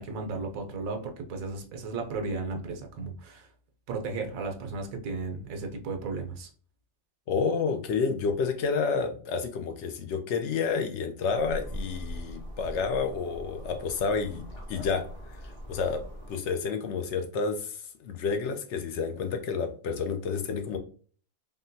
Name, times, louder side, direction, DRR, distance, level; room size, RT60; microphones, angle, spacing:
voice 1, 0.0-3.5 3.9-6.5, right 3 dB, 90° right, 3 dB, 1.1 m, -34 dB
voice 2, 7.3-14.4 14.7-15.1 15.7-16.0 16.3-17.8 18.0-20.8, left 5 dB, 65° left, 6 dB, 0.8 m, -29 dB
sound 1, 11.3-16.4, equal, 40° left, 1.0 m, -41 dB
3.6 x 2.2 x 2.6 m, 0.42 s
omnidirectional pair, 1.4 m